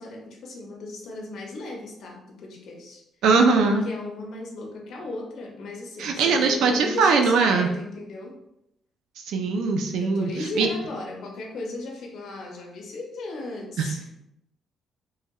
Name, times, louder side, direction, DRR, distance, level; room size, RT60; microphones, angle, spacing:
voice 1, 0.0-3.0 3.7-8.4 10.0-14.1, left 2 dB, 70° left, 0 dB, 0.6 m, -36 dB
voice 2, 3.2-3.8 6.0-7.7 9.3-10.7 13.8-13.9, right 4 dB, 85° right, 4 dB, 0.4 m, -21 dB
3.2 x 2.6 x 2.3 m, 0.82 s
cardioid pair, 90°, 0 cm